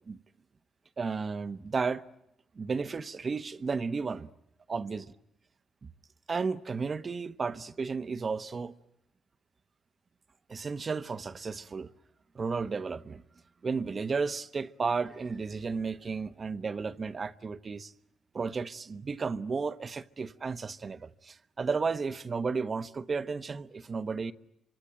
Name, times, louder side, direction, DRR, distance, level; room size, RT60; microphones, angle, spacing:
voice 1, 1.0-2.0 2.6-4.3 4.7-5.0 5.8-5.9 6.3-8.7 10.5-11.9 12.3-13.2 13.6-17.9 18.3-24.3, right 4 dB, 35° right, 1.0 m, -33 dB
26.0 x 25.5 x 9.1 m
cardioid pair, 90°, 0 cm